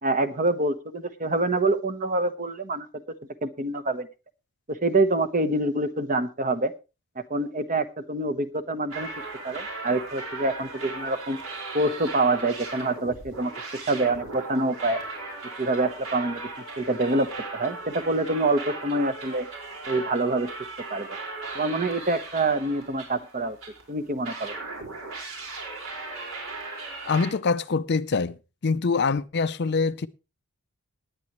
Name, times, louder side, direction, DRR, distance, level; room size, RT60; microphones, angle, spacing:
voice 1, 0.0-2.9 3.4-4.1 4.7-6.7 7.3-9.1 9.4-11.4 11.7-13.5 13.9-15.0 15.6-16.4 16.8-19.5 19.9-20.5 20.9-21.1 21.5-23.6 23.9-24.5, right 2 dB, 35° right, 1.1 m, -26 dB
sound 1, 8.9-23.8 24.2-27.3, right 3 dB, 70° right, 4.9 m, -37 dB
voice 2, 27.0-28.4 28.6-30.1, left 4 dB, 50° left, 0.5 m, -24 dB
19.0 x 9.6 x 3.1 m
head